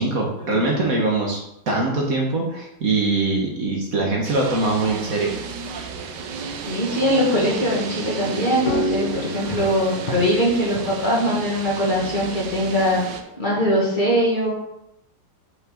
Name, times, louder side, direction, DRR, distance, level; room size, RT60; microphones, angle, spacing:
voice 1, 0.0-1.4 1.7-5.3, right 2 dB, 50° right, -1 dB, 1.6 m, -22 dB
sound 1, 4.2-13.2, right 5 dB, 75° right, 1.4 m, -33 dB
voice 2, 6.7-13.0 13.4-14.5, equal, 25° left, -5 dB, 2.0 m, -21 dB
sound 2, 8.4-13.4, left 1 dB, 60° left, 1.2 m, -31 dB
8.3 x 5.6 x 3.8 m, 0.82 s
omnidirectional pair, 2.0 m